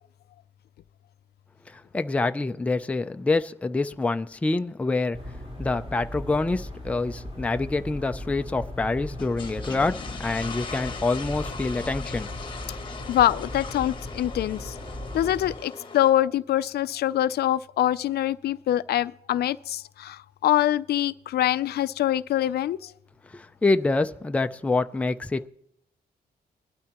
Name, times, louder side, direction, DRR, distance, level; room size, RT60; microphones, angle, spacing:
voice 1, 1.7-5.2 5.6-12.3 23.3-25.5, left 3 dB, 10° left, 0.4 m, -26 dB
sound 1, 5.1-15.5, left 1 dB, 35° right, 3.4 m, -38 dB
sound 2, 9.1-16.1, left 4 dB, 30° left, 1.0 m, -39 dB
voice 2, 13.1-14.7 15.1-22.9, left 12 dB, 75° left, 0.4 m, -24 dB
21.0 x 12.0 x 3.0 m
wide cardioid pair, 175°, 17 cm